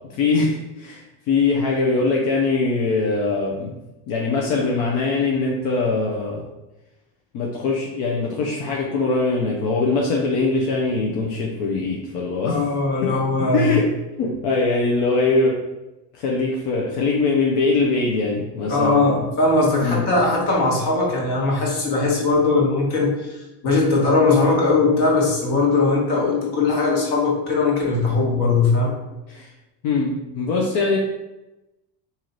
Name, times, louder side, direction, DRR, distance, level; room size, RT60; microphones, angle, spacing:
voice 1, 0.1-3.7 4.1-6.4 7.3-12.6 13.0-13.1 13.4-13.9 14.2-15.6 16.1-19.2 19.8-20.0 29.3-29.5 29.8-31.0, left 3 dB, 85° left, -2 dB, 0.8 m, -22 dB
voice 2, 12.5-13.7 18.7-28.9, left 3 dB, 55° left, -2 dB, 1.4 m, -20 dB
3.1 x 2.8 x 3.9 m, 1.0 s
cardioid pair, 125°, 46 cm